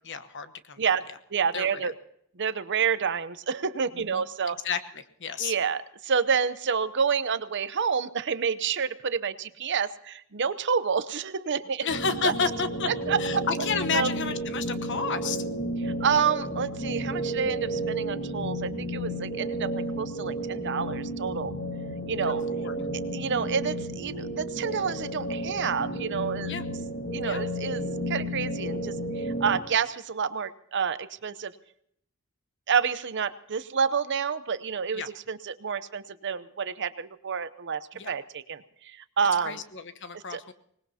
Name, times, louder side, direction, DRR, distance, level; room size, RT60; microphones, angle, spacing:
voice 1, 0.1-0.8 1.5-1.9 4.1-4.2 4.6-4.8 5.2-5.5 11.8-12.9 13.2-15.4 22.2-22.8 26.5-26.6 27.2-27.4 34.9-35.1 37.9-38.1 39.4-40.5, left 5 dB, 60° left, 10 dB, 1.1 m, -31 dB
voice 2, 1.3-1.9 2.4-4.6 5.4-11.9 12.2-12.3 12.9-13.4 13.9-14.1 15.8-21.5 22.1-22.4 23.1-26.5 27.1-31.5 32.7-39.6 40.1-40.4, right 6 dB, 60° right, 13 dB, 0.7 m, -29 dB
sound 1, 11.9-29.6, right 1 dB, 40° left, 1.9 m, -32 dB
25.0 x 20.0 x 2.8 m, 0.69 s
head